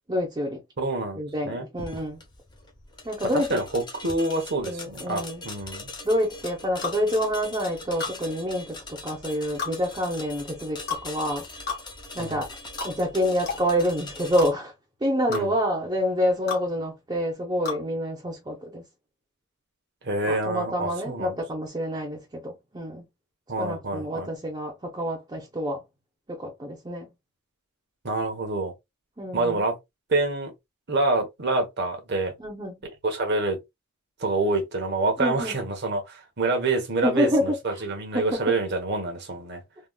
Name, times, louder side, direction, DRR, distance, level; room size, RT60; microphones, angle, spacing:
voice 1, 0.1-0.6 1.1-2.2 3.0-3.6 4.6-5.4 6.0-8.8 9.0-11.4 12.1-12.5 12.8-14.7 15.0-18.8 20.2-23.1 23.6-25.8 26.3-27.1 29.2-29.6 32.4-32.8 35.2-35.6 37.0-37.4 38.1-38.4, equal, 20° right, 0.7 m, -27 dB
voice 2, 0.8-1.7 3.3-5.9 12.2-12.4 15.3-15.5 20.0-21.4 23.5-24.3 28.0-28.7 29.3-29.8 30.1-30.5 30.9-32.3 33.0-33.6 34.2-39.6, right 2 dB, 50° right, 1.0 m, -27 dB
sound 1, 1.8-14.5, left 2 dB, 20° left, 0.8 m, -41 dB
sound 2, 6.8-7.0 8.0-8.2 9.6-9.7 10.9-11.1 11.7-11.8 12.8-12.9 13.4-13.6 14.4-14.5 15.3-15.4 16.5-16.6 17.6-17.8, left 5 dB, 50° left, 1.4 m, -31 dB
3.7 x 2.3 x 2.2 m
head